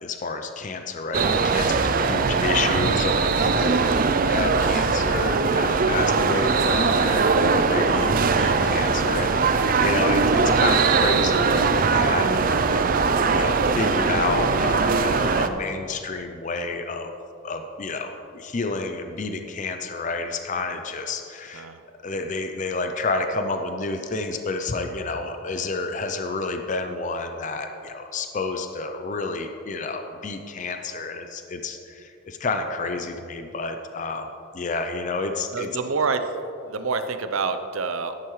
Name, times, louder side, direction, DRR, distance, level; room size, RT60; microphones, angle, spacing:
voice 1, 0.0-12.9 13.3-17.1 17.4-21.7 22.0-34.3 34.5-35.7, left 3 dB, 40° left, 6 dB, 0.5 m, -30 dB
sound 1, 1.1-15.5, right 4 dB, 45° right, 0.4 m, -21 dB
voice 2, 35.5-36.3 36.6-38.1, right 4 dB, 85° right, 9 dB, 0.7 m, -27 dB
12.5 x 11.0 x 3.2 m, 2.7 s
head